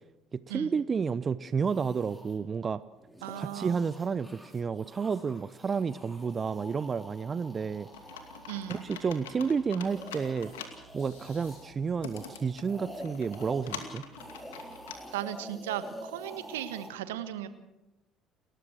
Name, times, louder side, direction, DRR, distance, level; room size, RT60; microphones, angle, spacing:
voice 1, 0.3-2.8 3.2-7.9 8.7-10.5 10.9-14.1, right 5 dB, 35° right, 16 dB, 0.7 m, -31 dB
sound 1, 1.7-2.4 3.0-11.7 12.0-16.9, equal, 5° left, 5.9 m, -48 dB
voice 2, 3.2-3.8 8.5-8.8 15.1-17.5, right 12 dB, 80° right, 11 dB, 1.5 m, -36 dB
Computer keyboard, 7.9-15.0, left 6 dB, 80° left, 2.5 m, -45 dB
29.5 x 14.5 x 6.4 m, 0.94 s
hypercardioid pair, 60°, 0 cm